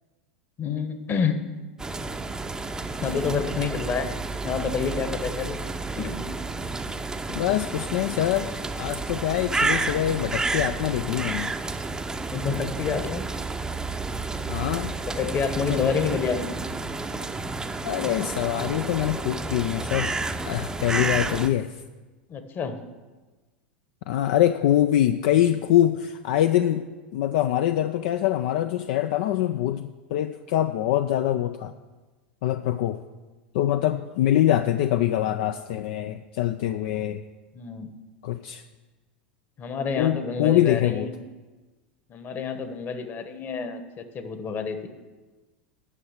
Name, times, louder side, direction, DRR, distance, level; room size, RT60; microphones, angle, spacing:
voice 1, 0.6-1.4 3.0-4.1 4.4-5.6 6.0-6.2 6.6-6.7 12.3-13.2 15.1-16.5 22.3-22.8 37.5-37.9 39.6-41.1 42.1-44.9, left 5 dB, 35° left, 9 dB, 1.2 m, -28 dB
sound 1, 1.8-21.5, right 3 dB, 10° right, 0.6 m, -31 dB
voice 2, 7.3-11.5 14.5-14.9 15.7-15.9 17.8-20.2 20.4-21.7 24.1-26.8 27.1-31.7 32.4-33.0 33.5-37.2 38.2-38.6 40.0-41.1, left 12 dB, 65° left, 9 dB, 0.4 m, -24 dB
9.8 x 6.3 x 7.3 m, 1.2 s
hypercardioid pair, 95°, 6 cm